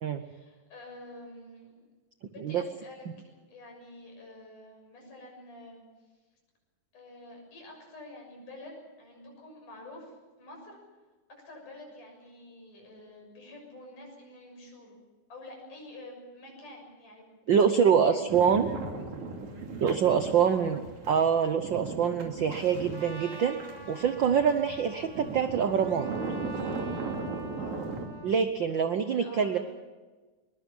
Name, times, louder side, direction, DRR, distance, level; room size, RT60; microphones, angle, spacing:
voice 1, 0.2-1.8 2.3-5.8 6.9-10.8 11.3-15.0 15.3-18.2 20.3-20.7 27.5-28.0 29.0-29.6, left 1 dB, 80° left, 1 dB, 8.2 m, -48 dB
voice 2, 17.5-18.7 19.8-20.8 21.1-23.6 23.9-26.1 28.2-29.6, right 7 dB, 85° right, 9 dB, 1.0 m, -25 dB
sound 1, 18.3-28.1, right 3 dB, 65° right, 4.0 m, -38 dB
Trumpet, 22.9-28.4, right 1 dB, 25° right, 0.5 m, -46 dB
22.5 x 22.0 x 7.3 m, 1.3 s
omnidirectional pair, 3.6 m